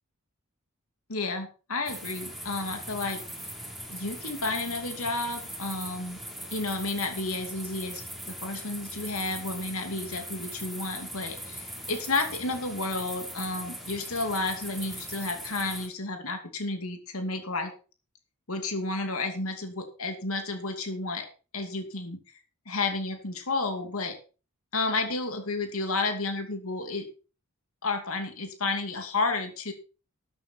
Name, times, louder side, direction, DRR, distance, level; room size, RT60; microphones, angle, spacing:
voice 1, 1.1-3.2 3.9-6.2 6.5-17.7 18.5-21.3 21.5-22.2 22.7-24.2 24.7-27.1 27.8-29.7, left 3 dB, 80° left, 5 dB, 2.6 m, -31 dB
sound 1, 1.9-15.9, equal, ahead, 3.4 m, -40 dB
13.0 x 8.9 x 4.3 m, 0.35 s
head